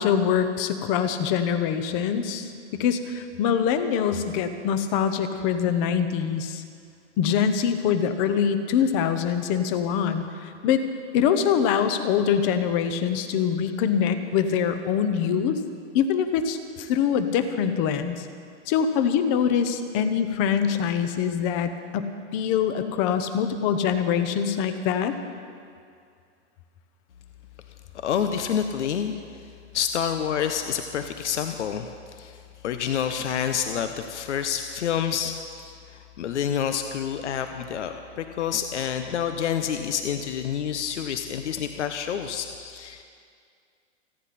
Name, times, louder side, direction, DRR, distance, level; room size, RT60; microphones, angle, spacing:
voice 1, 0.0-6.6 7.2-10.8 11.1-15.6 15.9-18.3 18.7-25.1 41.1-41.2, left 7 dB, 30° left, 10 dB, 0.9 m, -24 dB
voice 2, 28.0-29.1 29.7-43.0, left 8 dB, 75° left, 7 dB, 1.0 m, -28 dB
28.5 x 10.0 x 4.3 m, 2.3 s
hypercardioid pair, 155°, 35 cm